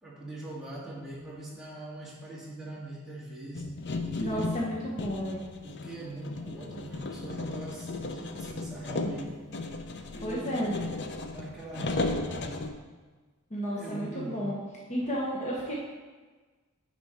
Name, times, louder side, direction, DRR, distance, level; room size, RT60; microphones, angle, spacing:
voice 1, 0.0-3.7 4.2-4.5 5.6-9.4 10.1-10.5 11.3-12.6 13.7-14.5, right 2 dB, ahead, -8 dB, 1.9 m, -41 dB
sound 1, 3.5-12.7, left 3 dB, 55° left, 0.5 m, -35 dB
voice 2, 4.1-5.4 10.2-10.8 13.5-14.6 14.9-15.7, equal, 35° left, -5 dB, 1.0 m, -32 dB
9.2 x 4.3 x 4.3 m, 1.3 s
head